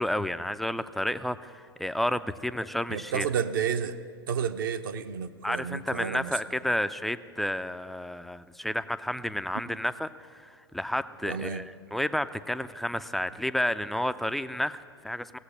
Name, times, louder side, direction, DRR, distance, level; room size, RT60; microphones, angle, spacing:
voice 1, 0.0-3.3 5.4-15.4, left 1 dB, ahead, 12 dB, 0.4 m, -31 dB
voice 2, 2.9-4.0 4.3-6.3 11.2-11.6, right 7 dB, 55° right, 7 dB, 0.7 m, -31 dB
17.0 x 8.0 x 9.8 m, 2.1 s
figure-of-eight pair, 95°, 13 cm